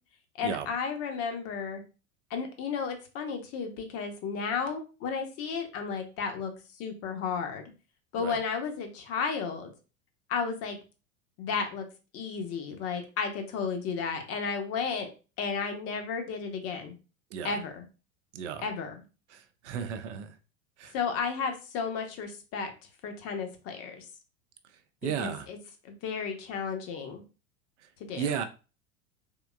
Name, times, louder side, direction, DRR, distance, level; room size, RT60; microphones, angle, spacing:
voice 1, 0.4-1.8 2.3-7.6 8.1-9.7 10.3-10.8 11.4-11.9 12.1-15.1 15.4-17.0 17.4-17.9 18.6-19.0 20.9-24.1 25.0-25.6 25.8-27.2 28.0-28.4, left 5 dB, 35° left, 0.9 m, -33 dB
voice 2, 18.3-18.7 19.3-20.4 20.8-20.9 25.0-25.5 27.8-27.9 28.2-28.4, right 8 dB, 55° right, 0.6 m, -34 dB
3.7 x 3.4 x 2.3 m
figure-of-eight pair, 85°, 42 cm